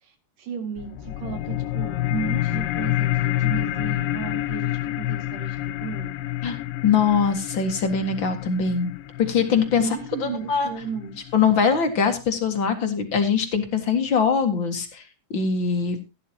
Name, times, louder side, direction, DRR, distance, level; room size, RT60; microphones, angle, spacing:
voice 1, 0.0-6.1 9.7-11.2, right 6 dB, 70° right, 7 dB, 3.7 m, -34 dB
sound 1, 0.8-11.8, left 15 dB, 85° left, 2.5 m, -28 dB
voice 2, 6.8-8.9 9.2-10.7 11.3-15.0 15.3-16.0, left 6 dB, 40° left, 6 dB, 2.0 m, -22 dB
16.5 x 11.0 x 2.9 m, 0.25 s
omnidirectional pair, 3.9 m